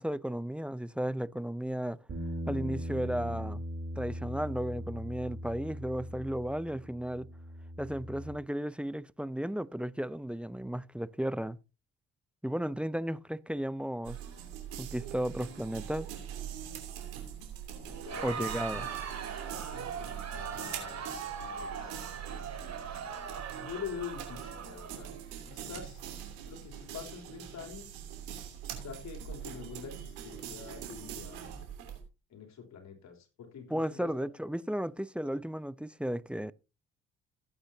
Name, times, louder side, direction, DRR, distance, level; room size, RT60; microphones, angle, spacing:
voice 1, 0.0-2.0 2.5-3.6 4.0-7.3 7.8-11.6 12.4-14.2 14.8-16.1 18.2-18.9 33.7-36.5, equal, 5° right, 0.6 m, -34 dB
Bass guitar, 2.1-8.3, equal, 40° right, 3.5 m, -40 dB
sound 1, 14.0-32.0, right 9 dB, 85° right, 3.0 m, -43 dB
Crowd, 17.9-25.4, right 7 dB, 55° right, 3.7 m, -40 dB
voice 2, 18.0-18.9 19.6-21.1 21.4-22.4 23.6-25.1 25.5-26.0 26.5-28.0 28.8-31.4 32.3-34.1, left 7 dB, 60° left, 3.3 m, -45 dB
16.5 x 8.7 x 2.8 m
hypercardioid pair, 50°, 31 cm